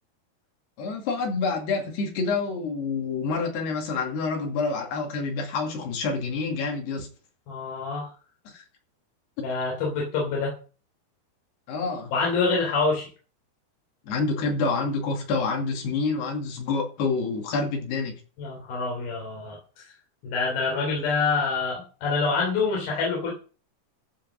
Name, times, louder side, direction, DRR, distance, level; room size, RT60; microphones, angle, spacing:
voice 1, 0.8-7.1 8.5-8.6 11.7-12.1 14.0-18.1, left 4 dB, 85° left, 4.5 m, -27 dB
voice 2, 7.5-8.1 9.4-10.5 12.1-13.1 18.4-19.9 20.2-23.3, left 4 dB, 65° left, 4.9 m, -26 dB
14.0 x 5.5 x 6.4 m
omnidirectional pair, 4.6 m